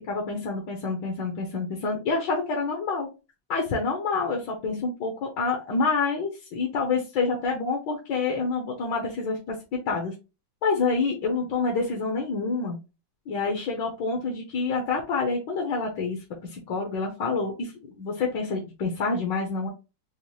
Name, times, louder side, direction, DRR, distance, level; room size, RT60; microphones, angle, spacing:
voice 1, 0.0-3.1 3.5-9.5 9.9-10.1 10.6-12.8 13.3-17.7 18.0-19.7, left 4 dB, 70° left, 0 dB, 1.5 m, -27 dB
5.4 x 2.0 x 3.1 m, 0.29 s
omnidirectional pair, 2.1 m